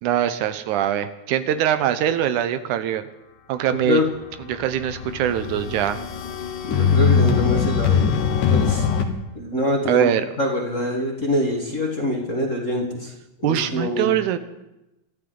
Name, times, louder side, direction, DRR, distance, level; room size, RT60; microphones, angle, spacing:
voice 1, 0.0-3.0 3.5-4.0 4.5-6.0 9.9-10.3 13.4-14.4, right 10 dB, 85° right, 10 dB, 2.2 m, -22 dB
sound 1, 4.2-9.0, left 6 dB, 85° left, 2.8 m, -21 dB
voice 2, 6.7-8.9 9.3-10.1 10.4-13.1 13.4-14.1, left 1 dB, 35° left, -1 dB, 1.5 m, -25 dB
26.5 x 13.0 x 3.9 m, 0.94 s
omnidirectional pair, 3.5 m